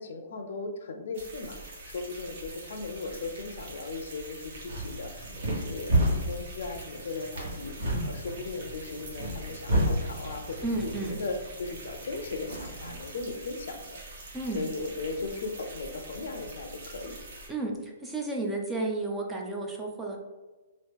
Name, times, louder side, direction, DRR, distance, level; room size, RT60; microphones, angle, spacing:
voice 1, 0.0-14.0 14.5-17.2, left 3 dB, 65° left, 6 dB, 0.5 m, -37 dB
sound 1, 1.1-17.5, right 2 dB, 50° right, 1.0 m, -45 dB
sound 2, 4.4-13.0, right 1 dB, 85° right, 1.3 m, -32 dB
voice 2, 10.6-11.2 14.3-14.6 17.5-20.2, right 2 dB, 10° right, 0 dB, 0.3 m, -32 dB
2.9 x 2.6 x 3.5 m, 1.2 s
hypercardioid pair, 170°, 0 cm